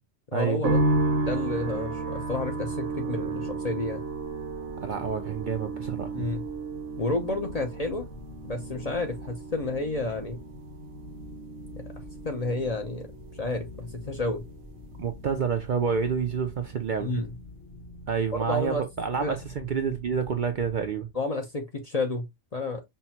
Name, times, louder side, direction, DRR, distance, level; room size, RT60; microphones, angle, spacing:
voice 1, 0.3-0.8 1.2-4.0 6.1-6.4 7.0-8.1 8.4-10.4 11.8-11.9 12.2-13.1 13.4-14.4 17.0-17.3 18.3-18.8 19.2-19.4 21.1-22.8, left 2 dB, 40° left, 0.6 m, -30 dB
sound 1, 0.6-15.9 16.2-17.0, right 3 dB, 90° right, 1.2 m, -33 dB
sound 2, 4.0-21.3, left 3 dB, 75° left, 1.7 m, -47 dB
voice 2, 4.8-6.3 15.0-17.1 18.1-21.1, right 6 dB, 60° right, 0.5 m, -28 dB
5.5 x 2.1 x 2.8 m
omnidirectional pair, 1.2 m